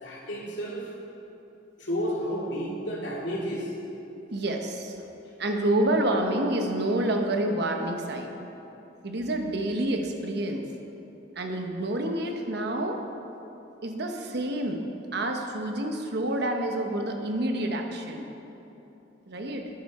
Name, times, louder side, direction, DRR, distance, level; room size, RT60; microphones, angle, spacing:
voice 1, 0.0-0.9 1.8-3.7, equal, 70° left, -4 dB, 2.5 m, -31 dB
voice 2, 4.3-5.0 5.4-8.3 9.0-10.7 11.4-13.0 13.8-14.8 15.1-18.3 19.3-19.7, right 1 dB, 60° right, 3 dB, 1.0 m, -28 dB
11.0 x 10.0 x 4.2 m, 3.0 s
head